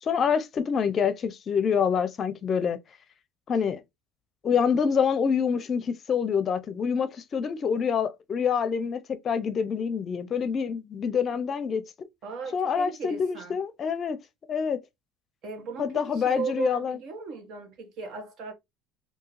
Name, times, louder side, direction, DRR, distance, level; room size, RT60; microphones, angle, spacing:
voice 1, 0.0-2.8 3.5-3.8 4.4-12.1 12.5-14.2 14.5-14.8 15.8-17.0, left 6 dB, 35° left, 0.6 m, -26 dB
voice 2, 12.2-13.6 15.4-18.5, right 5 dB, 60° right, 1.1 m, -37 dB
3.6 x 2.7 x 3.1 m
cardioid pair, 125°, 0 cm